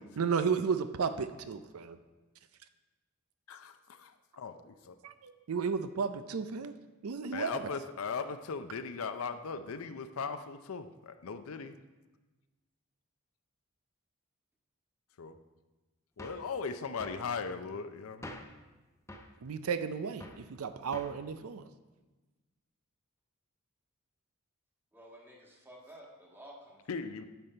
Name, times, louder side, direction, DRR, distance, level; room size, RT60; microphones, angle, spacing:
voice 1, 0.2-2.0 5.0-6.7 7.0-7.7 19.4-21.7, right 6 dB, 75° right, 11 dB, 0.5 m, -33 dB
voice 2, 3.5-5.0 7.3-11.8 15.2-15.4 16.2-18.4 26.9-27.2, left 5 dB, 70° left, 9 dB, 0.5 m, -38 dB
sound 1, 16.2-16.5 17.0-17.3 18.2-18.6 19.1-19.4 20.2-20.5 20.9-21.2, left 1 dB, 15° left, 0.5 m, -47 dB
voice 3, 24.9-27.0, right 1 dB, 10° right, -2 dB, 1.5 m, -53 dB
9.3 x 6.8 x 4.4 m, 1.2 s
head